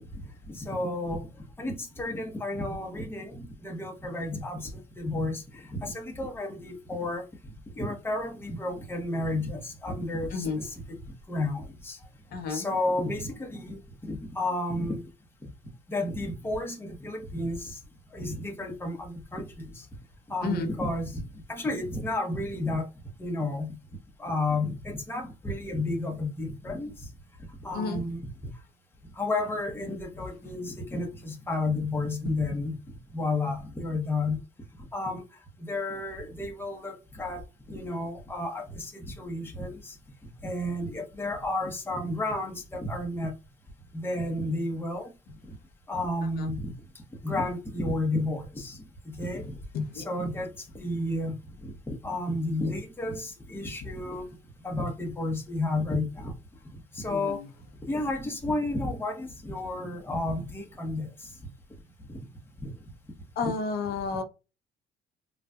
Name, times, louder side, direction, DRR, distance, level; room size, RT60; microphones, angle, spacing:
voice 1, 0.5-1.3 1.6-7.2 7.8-11.0 11.3-12.0 12.5-15.0 15.9-17.8 18.1-19.8 20.3-21.2 21.5-22.8 23.2-23.7 24.2-26.9 27.6-28.2 29.2-32.7 33.1-34.4 34.9-35.2 35.6-37.4 37.7-39.9 40.4-43.3 43.9-45.1 45.9-46.7 47.2-48.8 49.1-49.5 49.9-50.5 50.7-51.4 51.9-54.3 54.6-56.3 56.9-57.4 57.9-61.1 62.1-62.2 63.4-63.5, left 2 dB, 15° left, 0.9 m, -32 dB
voice 2, 10.3-10.6 12.3-12.7 20.4-20.7 27.7-28.0 32.2-32.4 46.2-46.5 49.7-50.0 53.8-53.9 57.1-57.5 63.4-64.2, left 5 dB, 65° left, 0.8 m, -32 dB
3.9 x 2.4 x 2.3 m
cardioid pair, 110°, 17 cm